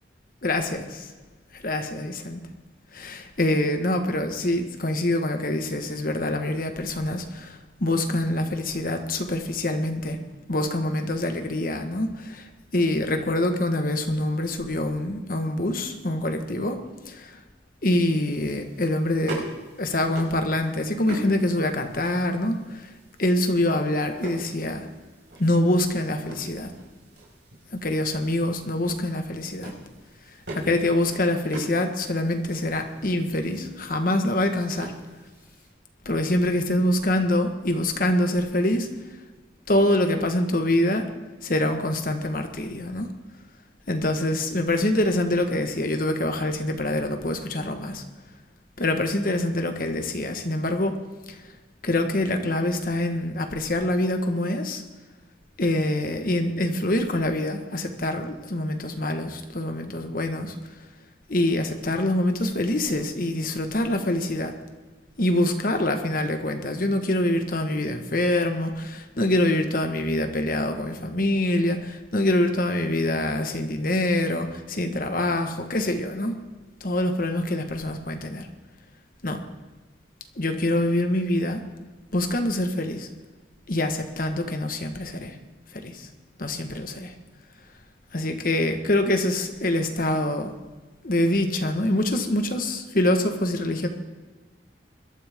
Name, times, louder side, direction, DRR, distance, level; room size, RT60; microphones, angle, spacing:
voice 1, 0.4-1.1 1.5-2.4 2.9-10.2 10.5-12.5 12.7-16.8 17.1-17.4 17.8-19.4 19.8-22.9 23.2-24.9 25.4-26.7 27.7-29.7 30.5-34.9 36.0-38.9 39.7-41.1 41.4-43.1 43.9-48.0 48.8-51.0 51.3-51.4 51.8-54.8 55.6-60.5 61.3-64.5 65.2-76.4 76.8-78.5 79.2-79.4 80.4-81.6 82.1-83.1 83.7-85.3 85.7-86.1 86.4-87.1 88.1-90.5 91.0-93.9, left 1 dB, 50° left, 6 dB, 1.4 m, -25 dB
sound 1, 18.1-35.7, right 1 dB, 70° right, 5.4 m, -43 dB
21.5 x 13.0 x 3.6 m, 1.2 s
head